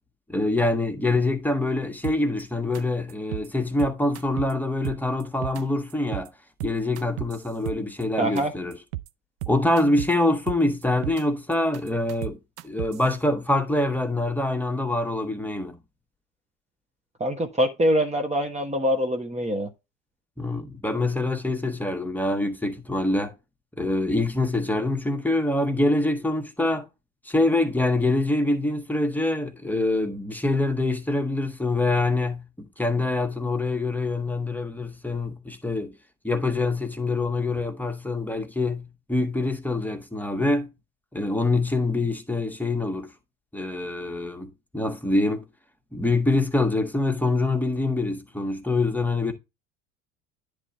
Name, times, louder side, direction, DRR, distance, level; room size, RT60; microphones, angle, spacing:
voice 1, 0.3-6.3 6.6-8.7 9.5-12.4 12.6-15.8 20.4-23.3 23.8-26.9 27.2-35.9 36.2-40.7 41.1-43.1 43.5-45.5 45.9-49.3, left 2 dB, 5° left, 1.4 m, -25 dB
sound 1, 2.0-2.4 2.7-2.8 3.1-3.5 3.8-4.5 4.8-5.6 5.9-6.3 6.6-8.0 8.4-8.5 8.7-9.1 9.4-10.1 10.5-11.2 11.5-13.1, right 17 dB, 70° right, 0.6 m, -34 dB
voice 2, 8.2-8.5 17.2-19.7, equal, 20° right, 1.3 m, -24 dB
10.0 x 3.6 x 4.1 m
hypercardioid pair, 65°, 37 cm